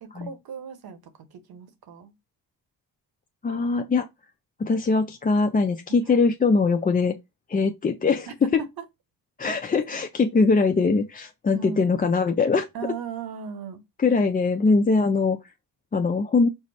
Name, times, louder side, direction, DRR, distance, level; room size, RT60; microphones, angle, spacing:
voice 1, 0.0-2.1 6.1-6.2 8.3-8.7 11.5-11.8 12.7-13.8, right 6 dB, 65° right, 0.9 m, -37 dB
voice 2, 3.4-4.1 4.6-7.2 7.5-8.6 9.4-12.7 14.0-15.4 15.9-16.5, left 4 dB, 25° left, 0.4 m, -22 dB
4.7 x 2.0 x 4.1 m
cardioid pair, 75°, 39 cm